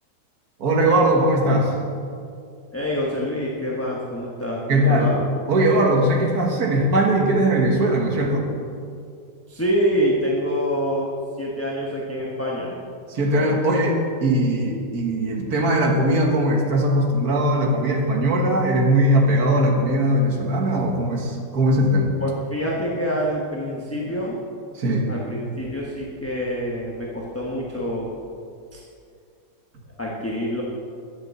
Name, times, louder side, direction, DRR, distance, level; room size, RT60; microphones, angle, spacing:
voice 1, 0.6-1.7 4.7-5.1 5.5-8.4 13.1-22.2 24.8-25.1, right 1 dB, 60° right, 0 dB, 2.0 m, -20 dB
voice 2, 2.7-5.2 9.5-12.7 13.3-13.5 20.4-20.5 22.2-24.4 25.1-28.1 28.7-28.8 30.0-30.6, equal, 10° left, -4 dB, 0.9 m, -26 dB
11.0 x 8.0 x 7.0 m, 2.4 s
omnidirectional pair, 1.8 m